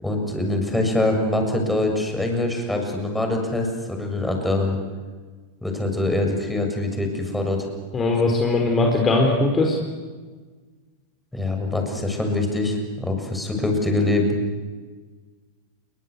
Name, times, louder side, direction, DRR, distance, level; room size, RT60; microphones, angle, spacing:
voice 1, 0.0-4.8 5.6-7.7 11.3-14.4, left 2 dB, 5° left, 3 dB, 7.0 m, -24 dB
voice 2, 7.9-9.8, left 2 dB, 20° left, 2 dB, 4.5 m, -20 dB
29.0 x 23.5 x 8.4 m, 1.4 s
figure-of-eight pair, 90°, 0 cm